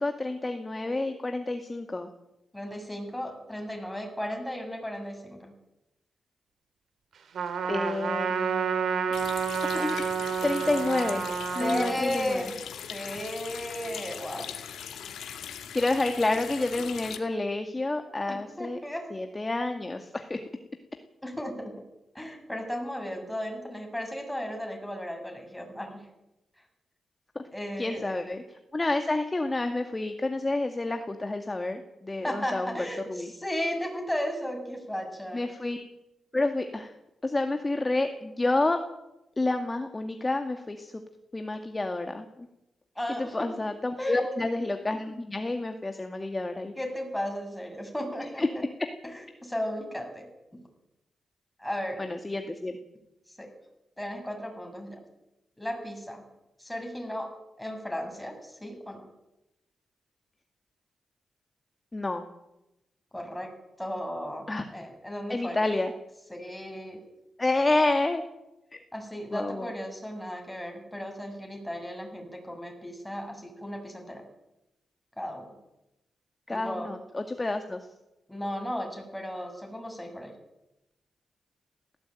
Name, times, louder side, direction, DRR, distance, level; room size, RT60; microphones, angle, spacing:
voice 1, 0.0-2.1 7.7-9.1 9.6-10.0 10.4-11.2 11.5-12.5 15.7-18.8 19.1-20.4 27.4-27.5 27.8-28.4 28.7-32.7 33.1-33.3 35.3-35.8 36.3-36.9 37.2-38.8 39.4-41.0 41.3-42.3 43.2-46.7 48.4-48.5 52.0-52.8 61.9-62.2 64.5-64.6 65.3-65.9 67.4-68.2 68.7-68.8 69.3-69.7 76.5-77.8, left 2 dB, 25° left, 6 dB, 2.1 m, -29 dB
voice 2, 2.5-5.5 11.6-12.6 12.9-14.6 18.3-19.1 21.2-21.8 22.1-26.1 27.5-28.3 32.2-35.5 43.0-43.5 44.0-44.4 46.8-48.6 49.0-50.6 51.6-52.1 53.3-53.5 54.0-55.0 55.6-56.2 56.6-59.0 63.1-65.6 66.3-67.0 68.9-74.3 75.2-75.6 76.5-76.9 78.3-80.3, equal, 5° left, 3 dB, 7.7 m, -35 dB
Trumpet, 7.3-12.0, right 6 dB, 80° right, 2.9 m, -29 dB
Water tap faucet, 9.1-17.2, left 8 dB, 90° left, 2.2 m, -40 dB
18.5 x 16.5 x 9.2 m, 0.92 s
cardioid pair, 70°, 0 cm